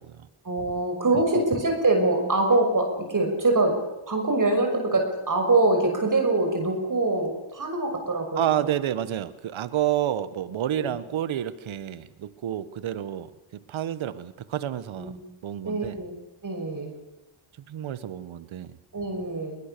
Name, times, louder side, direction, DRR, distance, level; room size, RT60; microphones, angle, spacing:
voice 1, 0.4-3.7 4.1-8.7 10.8-10.9 15.0-15.2 15.6-16.1 16.4-16.9 18.9-19.6, right 2 dB, 40° right, 3 dB, 6.2 m, -24 dB
voice 2, 8.3-15.2 15.4-16.0 17.7-18.8, right 11 dB, 70° right, 15 dB, 1.4 m, -29 dB
22.0 x 20.0 x 6.9 m, 1.1 s
cardioid pair, 60°, 49 cm